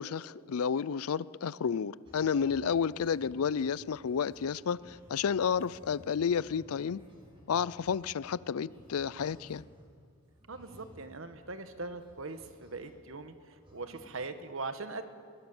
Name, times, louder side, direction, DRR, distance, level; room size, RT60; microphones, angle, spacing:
voice 1, 0.0-7.0 7.5-9.6, left 6 dB, 80° left, 0.4 m, -31 dB
sound 1, 2.0-9.9 10.3-13.4 13.6-14.1, equal, 25° right, 3.7 m, -57 dB
voice 2, 10.5-15.1, right 3 dB, 65° right, 1.3 m, -41 dB
22.0 x 17.5 x 7.1 m
head